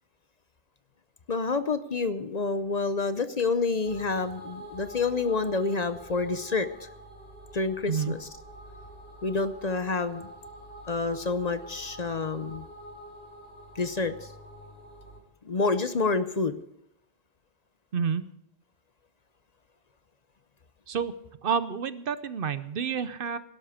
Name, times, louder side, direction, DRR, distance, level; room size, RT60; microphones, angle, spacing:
voice 1, 1.3-6.9 7.5-8.3 9.2-10.3 10.9-12.6 13.8-14.3 15.4-16.6, left 4 dB, 45° left, 11 dB, 0.8 m, -28 dB
sound 1, 3.9-15.2, right 1 dB, 65° left, 3.6 m, -46 dB
voice 2, 21.4-23.4, right 7 dB, 60° right, 13 dB, 0.9 m, -29 dB
17.0 x 12.5 x 5.0 m, 0.80 s
omnidirectional pair, 1.0 m